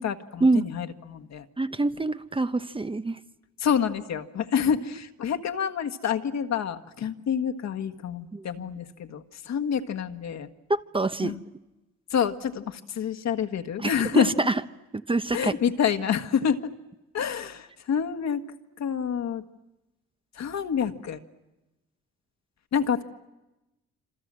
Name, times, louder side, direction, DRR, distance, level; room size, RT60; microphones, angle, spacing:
voice 1, 0.0-1.4 3.6-10.5 11.2-11.4 12.1-14.3 15.3-16.6 17.1-18.4 18.8-19.4 20.4-21.2 22.7-23.0, left 7 dB, 60° left, 7 dB, 1.7 m, -27 dB
voice 2, 1.6-3.2 8.3-8.4 10.7-11.4 13.8-14.5 15.1-15.5, right 2 dB, 15° right, 11 dB, 0.9 m, -25 dB
27.0 x 26.5 x 7.6 m, 1.0 s
cardioid pair, 90°, 30 cm